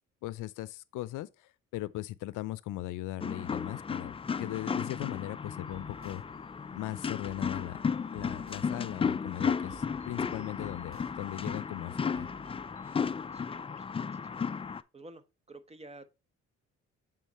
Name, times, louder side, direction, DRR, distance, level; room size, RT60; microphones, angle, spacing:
voice 1, 0.2-6.2 6.7-7.8 8.1-12.3, left 16 dB, 85° left, 0.5 m, -39 dB
sound 1, 3.2-14.8, left 6 dB, 20° left, 0.3 m, -34 dB
sound 2, 5.7-13.1, right 4 dB, 45° right, 1.2 m, -57 dB
voice 2, 13.3-14.2 14.9-16.1, right 2 dB, 20° right, 1.0 m, -51 dB
8.2 x 3.8 x 4.1 m
cardioid pair, 90°, 30 cm